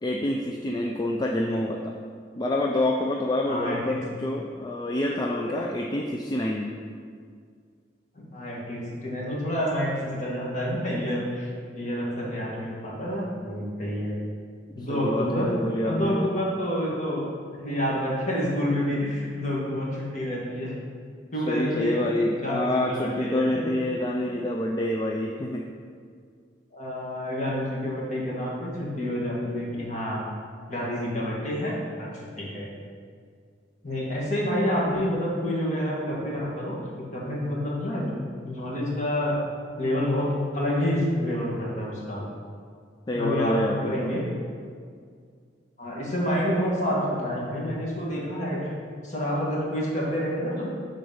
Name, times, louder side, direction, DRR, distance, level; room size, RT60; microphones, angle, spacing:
voice 1, 0.0-1.9 2.4-6.7 14.9-16.3 21.5-25.6 43.1-44.1, left 1 dB, 25° left, 0 dB, 0.4 m, -27 dB
voice 2, 3.4-4.0 8.1-14.2 14.7-15.5 15.8-17.2 17.6-20.7 21.3-22.0 22.4-23.7 26.7-30.2 30.7-31.7 32.0-32.7 33.8-38.1 38.4-39.4 39.8-42.2 43.1-44.3 45.8-48.6 49.0-50.7, equal, 40° left, -4 dB, 1.7 m, -28 dB
8.2 x 3.9 x 5.5 m, 2.1 s
head